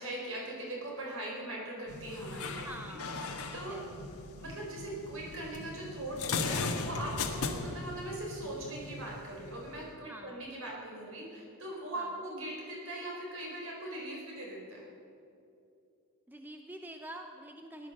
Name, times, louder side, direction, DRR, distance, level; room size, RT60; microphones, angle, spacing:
voice 1, 0.0-3.8 4.4-14.8, right 1 dB, 65° right, -2 dB, 4.4 m, -41 dB
sound 1, 1.9-9.9, left 4 dB, 80° left, 1.3 m, -38 dB
voice 2, 2.6-3.1 3.5-3.9 7.5-8.0 10.1-10.5 12.0-12.2 16.3-17.9, right 1 dB, 10° right, 4 dB, 0.6 m, -47 dB
18.0 x 11.0 x 6.7 m, 2.6 s
head